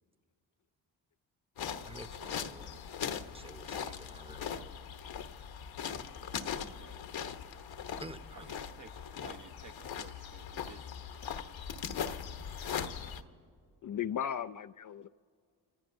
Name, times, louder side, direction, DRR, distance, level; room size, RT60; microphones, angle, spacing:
sound 1, 1.6-13.2, left 7 dB, 65° left, 1.1 m, -40 dB
voice 1, 1.8-2.8 3.3-4.7 8.0-8.5, right 1 dB, 10° right, 1.1 m, -50 dB
voice 2, 6.8-7.1 8.4-10.9, right 4 dB, 40° right, 1.0 m, -54 dB
voice 3, 13.8-15.1, left 9 dB, 40° left, 0.5 m, -36 dB
27.5 x 16.0 x 2.6 m
supercardioid pair, 40°, 49 cm